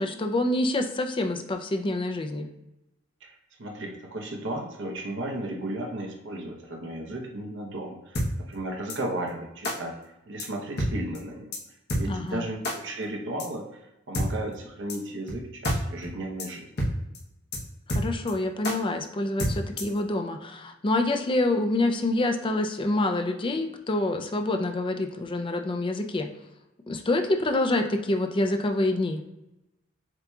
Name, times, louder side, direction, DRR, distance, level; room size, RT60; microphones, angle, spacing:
voice 1, 0.0-2.5 12.1-12.5 17.9-26.3 26.9-29.2, left 2 dB, 25° left, 6 dB, 0.5 m, -27 dB
voice 2, 3.2-10.0 10.3-11.5 11.9-16.7, right 1 dB, 60° right, 1 dB, 0.9 m, -35 dB
sound 1, 8.2-8.3 8.9-9.0 9.6-9.8 10.4-10.5 10.8-10.9 11.2-11.3 11.5-11.6 11.9-12.0 12.6-12.8 13.4-13.5 14.1-14.3 14.9-15.0 15.3-15.4 15.6-15.8 16.0-16.1 16.4-16.5 16.8-16.9 17.2-17.3 17.5-17.6 17.9-18.3 18.6-18.8 19.4-20.0, equal, 50° left, 0.9 m, -27 dB
7.4 x 2.8 x 2.3 m, 0.93 s
head